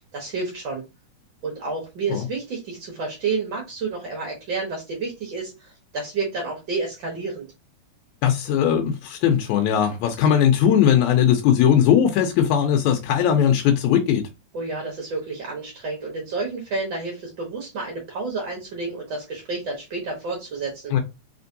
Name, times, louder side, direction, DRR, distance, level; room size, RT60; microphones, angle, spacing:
voice 1, 0.1-0.8 1.4-7.5 14.5-20.9, right 3 dB, 60° right, 1.2 m, -30 dB
voice 2, 8.2-14.3 20.9-21.0, left 9 dB, 80° left, 1.9 m, -19 dB
4.4 x 3.2 x 2.6 m
omnidirectional pair, 3.5 m